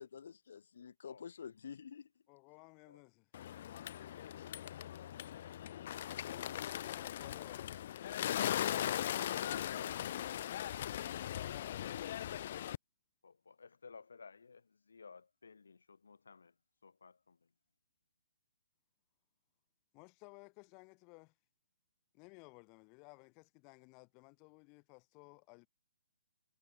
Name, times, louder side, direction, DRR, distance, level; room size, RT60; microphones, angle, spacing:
voice 1, 0.0-2.1, left 7 dB, 60° left, 1.5 m, -49 dB
voice 2, 2.3-3.3 6.0-7.8 11.4-12.2 19.9-21.3 22.1-25.7, left 33 dB, 20° left, 2.8 m, -57 dB
Bird, 3.3-12.8, left 11 dB, 40° left, 0.9 m, -39 dB
voice 3, 8.7-10.3 13.2-16.6 16.8-17.5, left 5 dB, 90° left, 3.2 m, -55 dB
hypercardioid pair, 165°, 0 cm